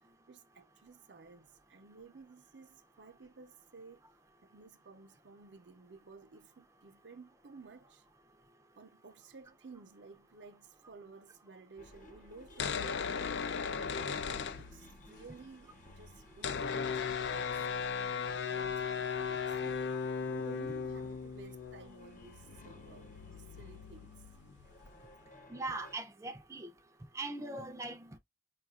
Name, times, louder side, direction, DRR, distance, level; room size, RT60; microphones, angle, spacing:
voice 1, 0.3-4.0 4.4-8.0 8.8-24.2, right 4 dB, 85° right, 0.6 m, -55 dB
sound 1, 11.8-26.0, left 1 dB, 45° left, 1.0 m, -58 dB
sound 2, 12.4-15.2 15.5-15.6 15.7-25.2, left 6 dB, 75° left, 0.4 m, -37 dB
voice 2, 25.5-26.7 27.1-28.2, right 2 dB, 15° right, 0.4 m, -40 dB
4.9 x 2.3 x 2.3 m
head